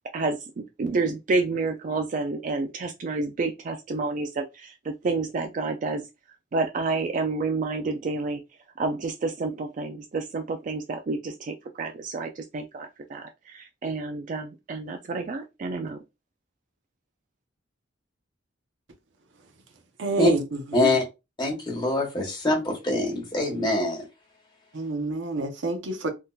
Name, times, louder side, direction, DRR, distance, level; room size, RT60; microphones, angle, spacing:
voice 1, 0.1-6.1 6.5-8.4 8.8-16.0, right 3 dB, 40° right, 0.3 m, -29 dB
voice 2, 20.0-20.4 24.7-26.1, right 2 dB, 65° right, 0.7 m, -28 dB
voice 3, 20.7-21.0 21.4-24.1, left 1 dB, 25° left, 1.2 m, -24 dB
3.6 x 2.7 x 2.3 m
head